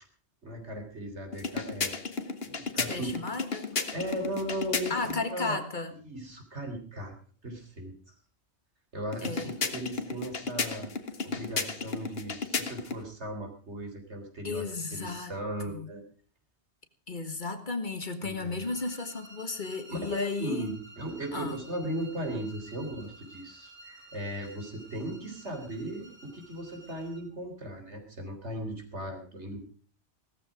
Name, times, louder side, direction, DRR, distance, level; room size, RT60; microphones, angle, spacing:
voice 1, 0.4-2.0 2.4-3.1 3.9-5.6 6.1-7.1 7.4-8.1 8.9-10.9 11.3-16.0 18.2-18.6 19.9-29.6, right 1 dB, 80° right, 4 dB, 4.0 m, -37 dB
sound 1, 1.3-5.2 9.1-13.0, left 4 dB, 60° left, 1.7 m, -34 dB
voice 2, 2.9-3.7 4.9-5.9 9.2-9.5 14.4-15.3 15.7-15.9 17.1-20.7 21.3-21.6, left 3 dB, 45° left, 9 dB, 1.7 m, -34 dB
sound 2, 18.6-27.3, right 2 dB, 10° right, 4.4 m, -53 dB
17.0 x 14.0 x 5.0 m, 0.40 s
omnidirectional pair, 1.2 m